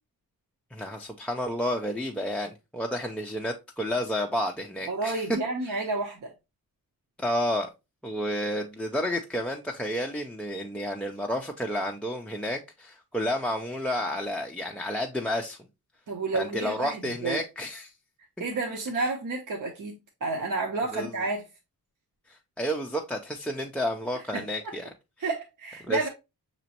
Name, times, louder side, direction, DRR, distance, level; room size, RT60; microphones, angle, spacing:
voice 1, 0.7-5.2 5.6-5.8 7.2-7.7 8.0-15.6 16.3-17.9 20.9-21.1 22.3-24.9 25.8-26.1, equal, 5° left, 0.4 m, -31 dB
voice 2, 4.9-6.3 16.1-17.4 18.4-21.5 24.3-24.4 25.2-26.1, right 3 dB, 55° right, 0.9 m, -30 dB
6.0 x 3.0 x 2.8 m
wide cardioid pair, 165°, 37 cm